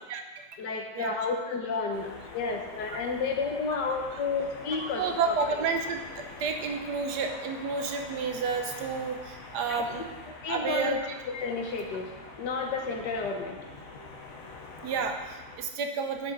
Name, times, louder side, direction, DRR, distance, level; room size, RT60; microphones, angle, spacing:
voice 1, 0.6-5.6 9.7-9.8 10.4-11.0 11.3-12.1 12.4-13.6, left 4 dB, 85° left, 3 dB, 1.6 m, -31 dB
sound 1, 1.9-15.6, left 3 dB, 55° left, 1.3 m, -45 dB
voice 2, 4.8-6.0 6.4-10.0 10.5-11.0 14.8-16.3, right 5 dB, 75° right, 5 dB, 1.3 m, -30 dB
9.6 x 5.6 x 3.9 m, 1.2 s
omnidirectional pair, 1.8 m